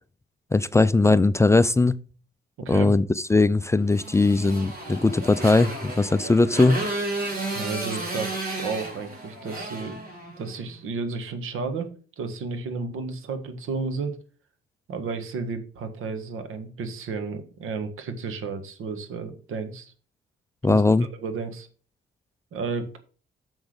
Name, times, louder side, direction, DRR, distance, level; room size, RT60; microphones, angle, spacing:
voice 1, 0.5-2.0 2.7-6.8 20.6-21.1, left 3 dB, 15° left, 0.4 m, -20 dB
voice 2, 2.6-2.9 7.5-10.0 10.4-11.9 12.2-14.2 14.9-19.9 20.7-20.8 21.2-21.7 22.5-22.9, right 4 dB, 75° right, 1.6 m, -32 dB
Motorcycle, 3.9-10.6, right 2 dB, 45° right, 4.3 m, -33 dB
7.1 x 6.0 x 5.0 m
cardioid pair, 100°, 21 cm